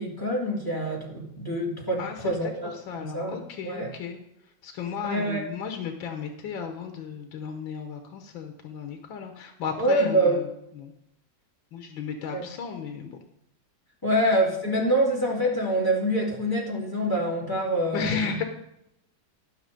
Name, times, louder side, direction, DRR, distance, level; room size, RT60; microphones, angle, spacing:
voice 1, 0.0-3.9 5.0-5.4 9.8-10.4 12.3-12.4 14.0-18.4, right 1 dB, 10° left, -4 dB, 2.6 m, -26 dB
voice 2, 2.0-4.2 4.6-10.5 10.8-10.9 11.7-13.2 14.1-14.2 17.9-18.4, left 6 dB, 85° left, 5 dB, 1.7 m, -34 dB
12.5 x 5.7 x 5.2 m, 0.80 s
omnidirectional pair, 2.0 m